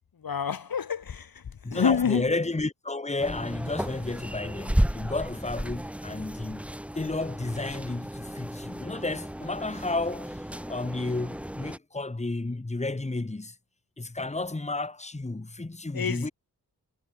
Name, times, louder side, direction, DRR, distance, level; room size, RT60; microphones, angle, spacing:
voice 1, 0.2-1.3 1.7-2.2 15.9-16.3, left 7 dB, 60° left, 1.7 m, -27 dB
voice 2, 1.6-6.6 6.9-13.6 14.0-16.3, left 2 dB, 15° left, 2.0 m, -32 dB
sound 1, 3.2-11.8, equal, 5° right, 1.2 m, -33 dB
wide cardioid pair, 120°, 39 cm